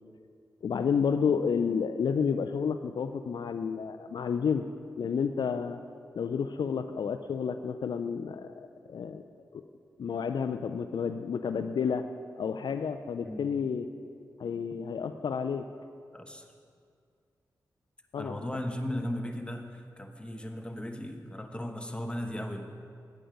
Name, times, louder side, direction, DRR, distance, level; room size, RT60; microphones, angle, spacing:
voice 1, 0.6-4.7 5.0-5.8 6.1-9.2 9.5-9.6 10.0-12.1 12.4-13.9 14.4-15.7 18.1-18.4, left 6 dB, 65° left, 9 dB, 0.4 m, -30 dB
voice 2, 16.1-16.5 18.2-22.6, left 1 dB, 15° left, 5 dB, 1.1 m, -36 dB
9.0 x 8.5 x 5.2 m, 2.2 s
supercardioid pair, 40°, 8 cm